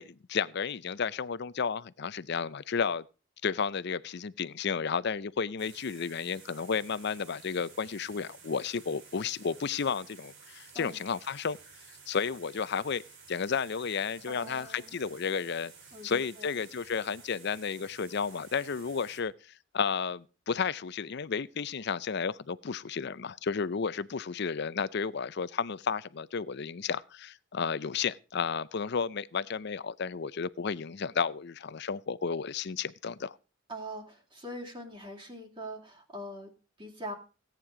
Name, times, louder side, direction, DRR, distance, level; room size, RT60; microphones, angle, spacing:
voice 1, 0.0-3.0 3.4-11.6 12.1-13.0 13.3-15.7 16.0-19.3 19.7-33.4, left 6 dB, 55° left, 0.6 m, -32 dB
sound 1, 5.6-19.2, right 5 dB, 70° right, 5.4 m, -53 dB
voice 2, 14.3-14.9 15.9-16.6 33.7-36.5 36.8-37.1, equal, 25° right, 2.5 m, -42 dB
17.0 x 9.2 x 4.9 m
head